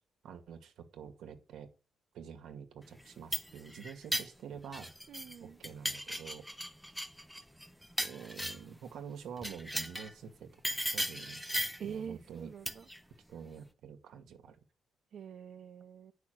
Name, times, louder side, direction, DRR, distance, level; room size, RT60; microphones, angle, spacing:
voice 1, 0.2-1.7 2.1-4.9 5.4-6.5 8.0-11.4 11.8-12.5 13.3-14.6, right 7 dB, 75° right, 2.1 m, -47 dB
sound 1, 3.0-5.4 5.6-8.8 9.4-10.1 10.6-11.9 12.7-13.0, equal, ahead, 0.7 m, -37 dB
voice 2, 5.1-5.6 11.8-12.8 15.1-16.1, right 7 dB, 55° right, 1.1 m, -45 dB
9.7 x 6.1 x 8.1 m
cardioid pair, 165°, 0 cm